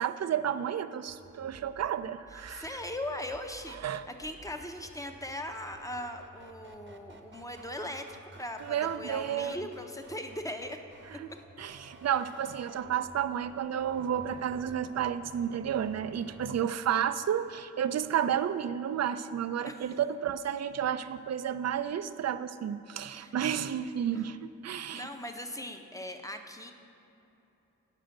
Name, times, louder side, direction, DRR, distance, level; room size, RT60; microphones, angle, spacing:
voice 1, 0.0-2.7 3.7-4.1 8.6-9.6 11.1-11.3 11.6-25.1, right 9 dB, 50° right, 12 dB, 0.4 m, -31 dB
sound 1, 1.1-16.5, right 2 dB, 35° right, 0.9 m, -53 dB
voice 2, 2.3-10.8 19.6-19.8 23.2-23.4 24.1-24.2 24.7-26.7, left 1 dB, 10° left, 5 dB, 0.8 m, -39 dB
9.1 x 4.9 x 6.5 m, 2.9 s
cardioid pair, 50°, 34 cm